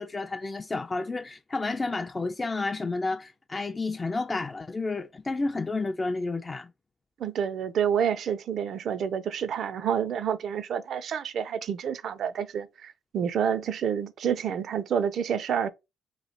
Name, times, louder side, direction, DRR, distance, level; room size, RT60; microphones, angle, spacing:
voice 1, 0.0-6.7, left 3 dB, 25° left, 0.3 m, -31 dB
voice 2, 7.2-15.7, right 8 dB, 65° right, 0.5 m, -28 dB
3.1 x 3.0 x 4.0 m
cardioid pair, 90°, 0 cm